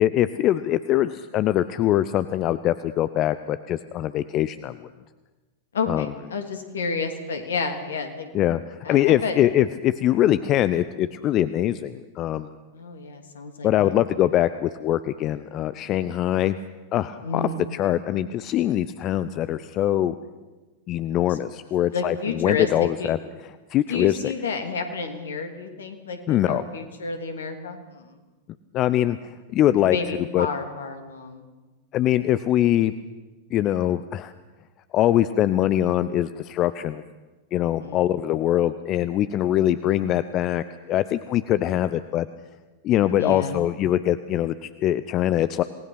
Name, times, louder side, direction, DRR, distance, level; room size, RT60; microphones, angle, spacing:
voice 1, 0.0-4.9 5.9-6.1 8.3-8.6 8.9-12.6 13.6-16.6 16.9-20.1 20.9-23.2 23.7-24.3 26.3-26.6 28.7-30.0 30.3-30.5 31.9-32.9 33.5-34.3 34.9-37.0 37.5-42.3 42.8-45.6, left 12 dB, 35° left, 14 dB, 0.7 m, -23 dB
voice 2, 5.7-8.3 8.8-9.4 12.7-13.9 17.2-17.6 21.3-21.4 21.9-23.1 23.9-28.2 29.7-31.5 37.8-38.1 43.1-43.6, left 4 dB, 65° left, 6 dB, 3.0 m, -30 dB
27.5 x 19.5 x 6.0 m, 1.2 s
figure-of-eight pair, 90°, 0 cm